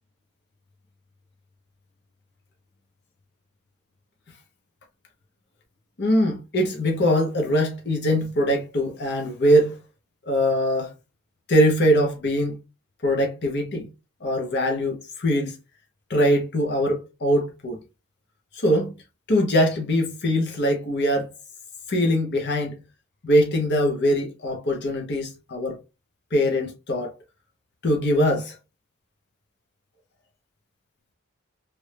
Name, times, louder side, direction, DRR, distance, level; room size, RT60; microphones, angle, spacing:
voice 1, 6.0-9.8 10.3-10.9 11.5-12.6 13.0-13.9 14.2-15.5 16.1-17.8 18.5-18.9 19.3-21.3 21.9-22.8 23.2-25.8 26.3-27.1 27.8-28.5, equal, 55° left, 0.9 m, -22 dB
3.1 x 2.6 x 3.2 m
head